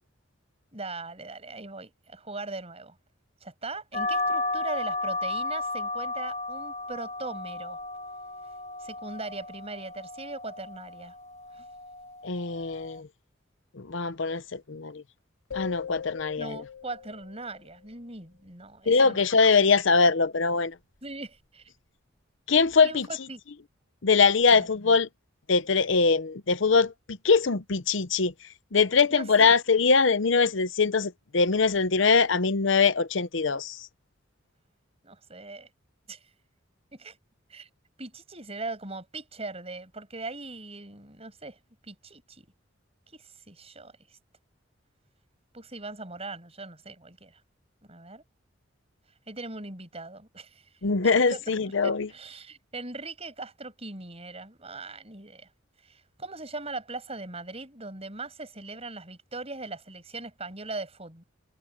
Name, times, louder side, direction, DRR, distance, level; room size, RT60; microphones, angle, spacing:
voice 1, 0.7-3.0 3.4-7.8 8.8-11.1 11.5-11.7 16.4-19.2 21.0-21.7 22.8-23.4 24.5-24.7 29.1-29.3 35.0-35.7 36.1-36.2 36.9-37.2 37.5-37.7 38.0-42.5 43.1-43.9 45.5-47.4 47.8-48.2 49.3-50.6 51.3-55.5 55.8-61.2, right 3 dB, 30° right, 7.5 m, -40 dB
sound 1, 3.9-13.0, left 2 dB, 35° left, 1.6 m, -34 dB
voice 2, 12.2-13.1 13.8-15.0 15.5-16.6 18.9-20.7 22.5-23.1 24.0-25.1 25.5-28.3 28.7-33.8 50.8-52.1, left 4 dB, 70° left, 0.8 m, -22 dB
sound 2, 15.5-17.8, left 8 dB, 90° left, 2.7 m, -40 dB
head